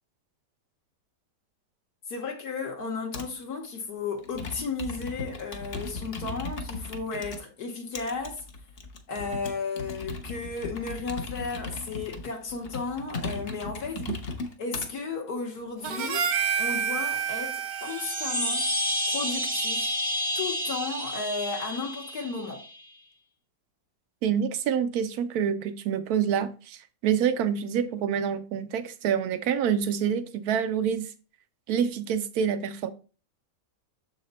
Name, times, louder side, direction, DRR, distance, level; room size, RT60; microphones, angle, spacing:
voice 1, 2.1-8.4 9.1-14.1 14.6-18.7 19.1-19.9 20.3-22.6, left 4 dB, 70° left, 1.5 m, -34 dB
Computer keyboard, 3.1-3.4 4.2-7.4 8.0-14.9 15.6-16.1, left 3 dB, 45° left, 0.9 m, -37 dB
Harmonica, 15.8-20.3, right 7 dB, 85° right, 1.4 m, -31 dB
sound 1, 17.7-22.8, equal, 25° right, 0.5 m, -30 dB
voice 2, 24.2-26.8 27.0-31.1 31.7-32.9, right 8 dB, 70° right, 1.1 m, -27 dB
6.8 x 4.2 x 4.0 m
omnidirectional pair, 1.8 m